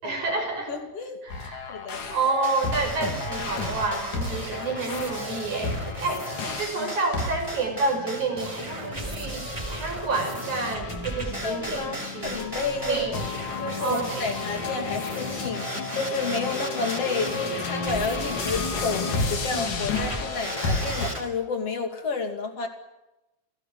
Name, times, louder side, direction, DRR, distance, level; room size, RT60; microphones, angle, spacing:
voice 1, 0.0-0.7 1.2-1.7 2.1-12.4 12.8-13.1 13.8-14.3, right 3 dB, 80° right, 3 dB, 7.5 m, -29 dB
voice 2, 0.7-1.2 1.7-2.0 6.1-6.2 6.8-6.9 11.4-13.2 13.6-22.7, left 4 dB, 55° left, 6 dB, 3.7 m, -31 dB
sound 1, 1.3-21.1, left 4 dB, 90° left, 4.4 m, -33 dB
sound 2, 2.4-21.2, right 1 dB, 10° right, 3.9 m, -36 dB
28.5 x 18.0 x 9.3 m, 0.99 s
omnidirectional pair, 3.3 m